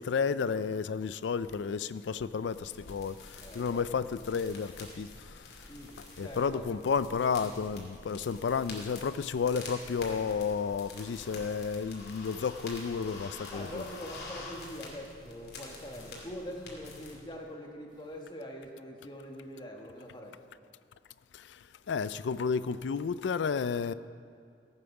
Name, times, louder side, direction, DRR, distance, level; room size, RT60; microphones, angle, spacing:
voice 1, 0.0-3.1 3.6-4.7 5.0-5.1 6.2-13.8 21.9-23.9, left 5 dB, 90° left, 15 dB, 0.4 m, -31 dB
sound 1, 2.5-17.1, left 2 dB, 65° left, 2.5 m, -47 dB
voice 2, 3.4-4.1 5.7-6.7 13.5-20.4, equal, 25° left, 1 dB, 1.4 m, -44 dB
15.0 x 8.8 x 5.9 m, 2.3 s
head